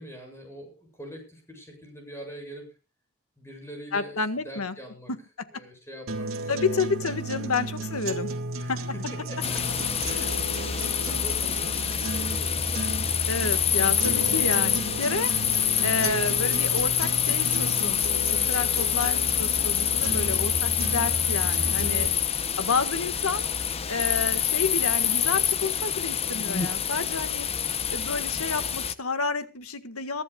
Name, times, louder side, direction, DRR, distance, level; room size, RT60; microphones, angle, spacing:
voice 1, 0.0-2.7 3.4-5.1 5.5-6.8 8.6-12.8 19.7-20.6, equal, 10° left, 3 dB, 7.7 m, -44 dB
voice 2, 3.9-4.8 5.5-5.6 6.5-8.4 8.7-8.8 13.3-15.3 15.8-22.1 22.6-23.4 23.9-27.5 27.9-30.2, left 4 dB, 85° left, 10 dB, 1.7 m, -30 dB
sound 1, 6.1-22.1, right 1 dB, 65° right, 2.2 m, -33 dB
sound 2, 9.4-28.9, left 9 dB, 30° left, 0.8 m, -26 dB
22.5 x 13.5 x 2.4 m, 0.31 s
head